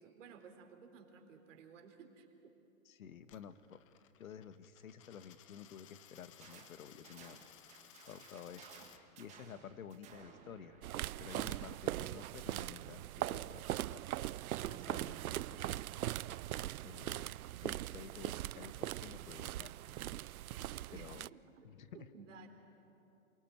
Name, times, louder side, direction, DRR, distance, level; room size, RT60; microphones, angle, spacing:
voice 1, 0.0-2.5 20.9-21.6 21.9-22.5, right 5 dB, 60° right, 4 dB, 3.7 m, -56 dB
voice 2, 2.8-3.8 4.2-7.4 7.6-10.8 11.2-14.1 14.6-15.9 16.8-17.3 17.6-19.7 20.9-21.3 21.6-22.1, left 8 dB, 80° left, 12 dB, 1.5 m, -52 dB
Coin (dropping), 3.2-9.0, left 12 dB, 25° left, 0.6 m, -61 dB
sound 1, 6.4-6.7 7.0-11.9, right 7 dB, 15° right, 1.7 m, -58 dB
sound 2, 10.8-21.3, right 14 dB, 90° right, 0.5 m, -40 dB
27.5 x 18.5 x 9.4 m, 2.8 s
hypercardioid pair, 155°, 42 cm